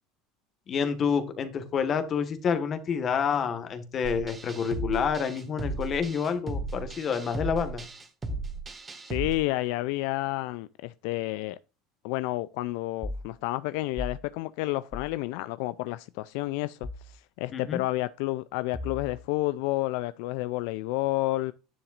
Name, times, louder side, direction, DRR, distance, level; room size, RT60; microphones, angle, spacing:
voice 1, 0.7-7.8 17.5-17.8, left 6 dB, 40° left, 1.5 m, -28 dB
sound 1, 4.0-9.3, right 2 dB, 20° right, 1.7 m, -35 dB
voice 2, 9.1-11.6 12.0-21.5, left 18 dB, 75° left, 0.4 m, -30 dB
sound 2, 13.0-13.3 14.0-14.2 14.9-15.2 16.8-17.1 18.7-19.3, left 2 dB, 5° left, 0.8 m, -37 dB
10.0 x 7.2 x 2.5 m
supercardioid pair, 115°, 0 cm